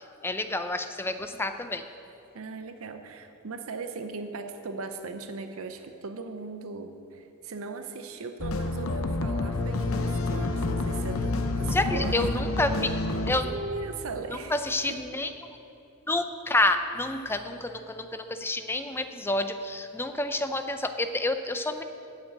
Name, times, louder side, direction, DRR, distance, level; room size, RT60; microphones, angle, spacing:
voice 1, 0.0-1.8 11.7-12.9 13.3-13.5 14.5-15.3 16.1-21.8, left 2 dB, 10° left, 8 dB, 0.5 m, -29 dB
voice 2, 2.3-12.4 13.4-14.6 14.9-15.0, right 4 dB, 70° right, 7 dB, 0.6 m, -38 dB
sound 1, 8.4-13.4, left 2 dB, 70° left, 0.7 m, -28 dB
9.0 x 7.2 x 8.1 m, 2.8 s
head